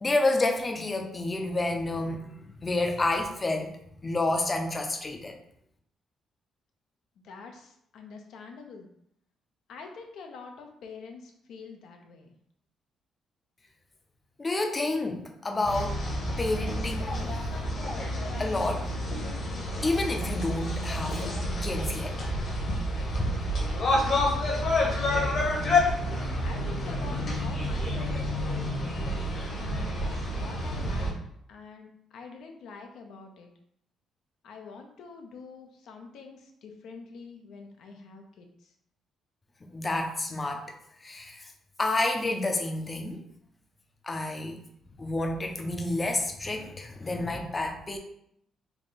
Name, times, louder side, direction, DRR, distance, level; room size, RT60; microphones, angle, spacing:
voice 1, 0.0-3.8 4.0-5.3 14.4-16.0 16.4-17.4 18.4-18.9 19.8-21.2 21.6-22.2 39.7-40.7 41.0-41.5 41.8-43.2 44.0-44.6 45.0-48.0, left 2 dB, 25° left, 3 dB, 0.5 m, -29 dB
voice 2, 7.2-8.9 9.7-12.3 23.8-25.1 26.4-29.1 29.6-30.0 30.4-31.2 31.5-33.5 34.4-38.7, left 4 dB, 75° left, 4 dB, 0.5 m, -46 dB
sound 1, 15.6-31.1, left 1 dB, 55° left, 1.0 m, -29 dB
3.5 x 2.3 x 4.0 m, 0.70 s
cardioid pair, 90°, 0 cm